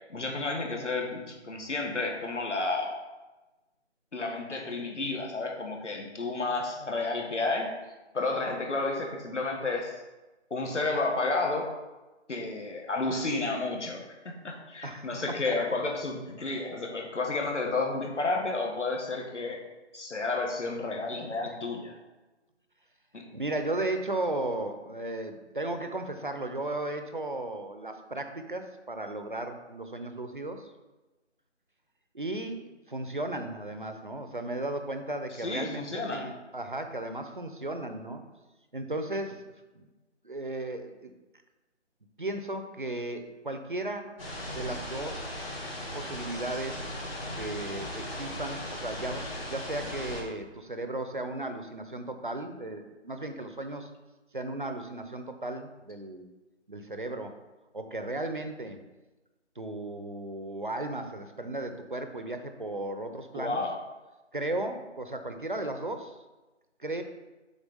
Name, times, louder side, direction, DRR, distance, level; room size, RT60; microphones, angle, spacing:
voice 1, 0.1-3.0 4.1-7.7 8.1-10.0 10.5-11.7 12.3-14.2 14.4-19.6 19.9-22.0 23.1-23.2 35.4-36.3 63.3-63.8, left 3 dB, 80° left, 1 dB, 1.7 m, -31 dB
voice 2, 14.8-15.6 23.3-30.7 32.1-38.2 38.7-39.4 39.7-39.9 40.2-41.1 42.2-44.2 44.5-45.4 45.9-46.9 47.4-53.9 54.3-56.3 56.7-57.4 57.7-58.8 59.6-63.6 64.3-66.2 66.8-67.0, right 2 dB, 45° right, 7 dB, 0.6 m, -35 dB
sound 1, 44.2-50.2, left 1 dB, 55° left, 2.2 m, -37 dB
7.2 x 3.8 x 5.3 m, 1.1 s
figure-of-eight pair, 175°, 36 cm